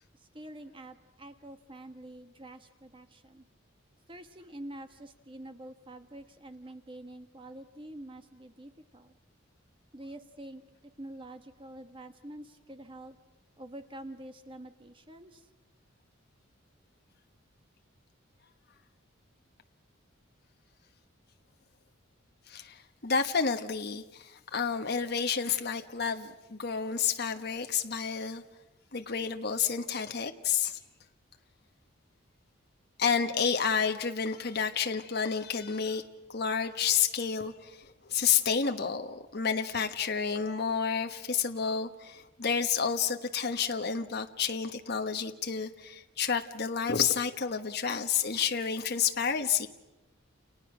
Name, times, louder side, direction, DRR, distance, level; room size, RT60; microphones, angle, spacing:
voice 1, 0.1-3.4 4.1-9.1 9.9-10.6 11.0-13.2 13.6-15.5, right 1 dB, 25° right, 7 dB, 1.3 m, -46 dB
voice 2, 22.5-28.4 28.9-30.8 33.0-49.7, left 6 dB, 50° left, 5 dB, 1.3 m, -30 dB
30.0 x 29.5 x 6.2 m, 1.0 s
head